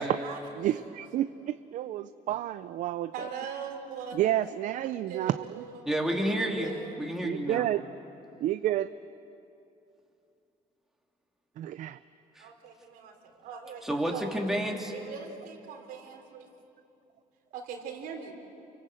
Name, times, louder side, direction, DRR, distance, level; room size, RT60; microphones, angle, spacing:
voice 1, 0.0-0.9 3.1-4.2 5.1-5.8 6.6-7.0 12.4-14.3 14.9-16.5 17.5-18.3, right 6 dB, 85° right, 2 dB, 4.0 m, -41 dB
voice 2, 0.6-3.1 4.1-5.6 7.2-7.8 8.4-8.9 11.6-12.0, right 13 dB, 60° right, 12 dB, 0.5 m, -30 dB
voice 3, 5.8-6.7 7.0-7.6 12.4-12.5 13.8-14.9, equal, 5° right, 0 dB, 2.7 m, -30 dB
29.5 x 25.0 x 7.8 m, 2.8 s
cardioid pair, 145°, 15 cm